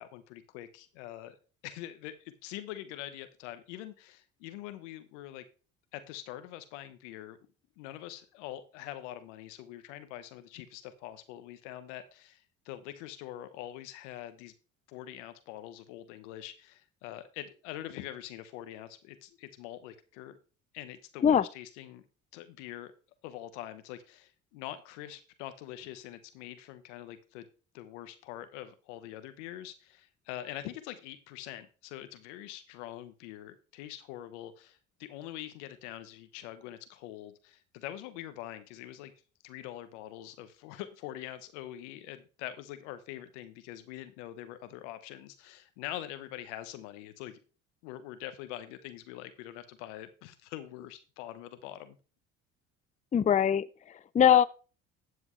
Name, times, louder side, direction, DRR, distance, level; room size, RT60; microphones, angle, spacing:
voice 1, 0.0-1.4 1.6-2.1 2.4-5.4 5.9-7.4 7.8-14.5 14.9-20.4 20.7-22.0 22.3-22.9 23.2-27.5 27.7-39.1 39.4-47.4 47.8-52.0, left 13 dB, 85° left, 1.2 m, -44 dB
voice 2, 53.1-54.5, left 9 dB, 20° left, 0.5 m, -23 dB
13.0 x 8.0 x 3.2 m
hypercardioid pair, 65°, 35 cm